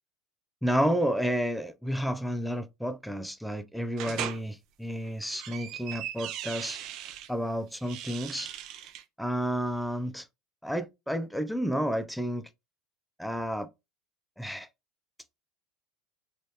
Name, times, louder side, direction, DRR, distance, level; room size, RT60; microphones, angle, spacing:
voice 1, 0.6-6.8 7.3-8.5 9.2-10.3 10.6-12.5 13.2-13.7 14.4-14.7, equal, ahead, 0.4 m, -31 dB
sound 1, 4.0-4.4 5.1-7.3 7.8-9.0, right 10 dB, 55° right, 0.6 m, -38 dB
3.3 x 3.1 x 2.7 m
supercardioid pair, 105°, 0 cm